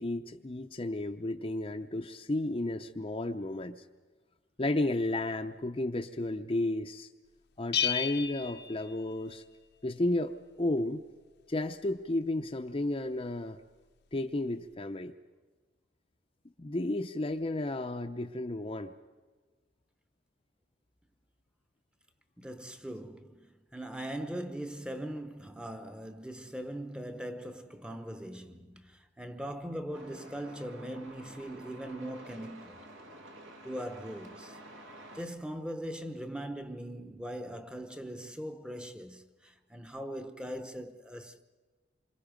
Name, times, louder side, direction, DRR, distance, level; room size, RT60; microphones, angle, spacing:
voice 1, 0.0-3.8 4.6-7.1 7.6-9.4 9.8-11.0 11.5-13.6 14.1-15.1 16.6-18.9, left 2 dB, 25° left, 0.7 m, -33 dB
Bell, 7.7-9.6, left 8 dB, 55° left, 0.8 m, -33 dB
voice 2, 22.4-32.9 33.6-34.6 35.1-41.4, right 1 dB, 5° right, 1.0 m, -40 dB
Truck, 29.9-35.2, right 1 dB, 75° right, 2.8 m, -50 dB
28.0 x 25.5 x 5.2 m
head